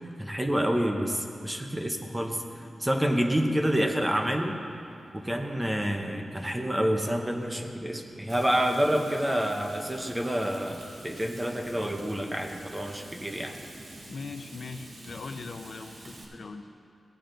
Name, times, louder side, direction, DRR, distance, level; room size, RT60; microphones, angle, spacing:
voice 1, 0.2-2.4 2.8-4.6 5.1-13.5, equal, 10° right, 3 dB, 0.8 m, -28 dB
sound 1, 0.9-16.4, right 1 dB, 30° right, 1.1 m, -50 dB
Frying (food), 8.3-16.2, right 2 dB, 65° right, 1.9 m, -50 dB
voice 2, 14.1-16.7, left 4 dB, 60° left, 7 dB, 0.5 m, -40 dB
17.0 x 8.6 x 3.9 m, 2.5 s
wide cardioid pair, 150°, 0 cm